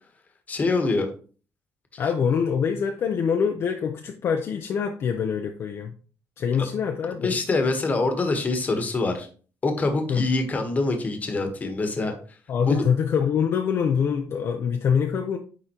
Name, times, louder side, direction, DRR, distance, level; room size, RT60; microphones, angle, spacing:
voice 1, 0.5-1.1 6.6-6.7 7.2-9.3 9.6-12.1 12.7-12.8, left 3 dB, 25° left, 5 dB, 1.2 m, -25 dB
voice 2, 2.0-5.9 6.4-7.3 10.1-10.2 12.5-15.4, left 7 dB, 50° left, 4 dB, 0.6 m, -24 dB
9.8 x 3.7 x 2.9 m, 0.39 s
cardioid pair, 150°, 6 cm